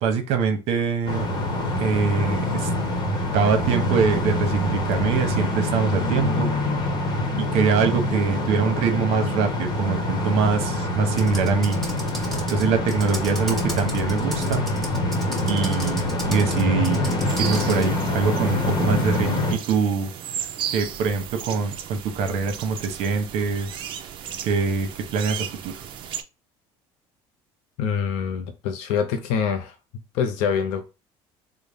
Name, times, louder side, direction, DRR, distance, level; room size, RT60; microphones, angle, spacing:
voice 1, 0.0-1.3 1.8-2.7 3.3-6.5 7.4-11.8 12.5-14.7 15.5-17.0 17.4-20.1 20.7-23.8 24.4-25.7, right 5 dB, 70° right, 0.8 m, -24 dB
sound 1, 1.1-19.6, left 1 dB, 40° left, 1.0 m, -25 dB
Computer keyboard, 11.1-17.9, right 2 dB, ahead, 1.3 m, -36 dB
sound 2, 17.3-26.2, right 9 dB, 50° right, 0.5 m, -35 dB
voice 2, 27.8-29.8 30.1-30.9, left 7 dB, 80° left, 0.5 m, -25 dB
3.9 x 2.0 x 3.4 m
cardioid pair, 135°, 11 cm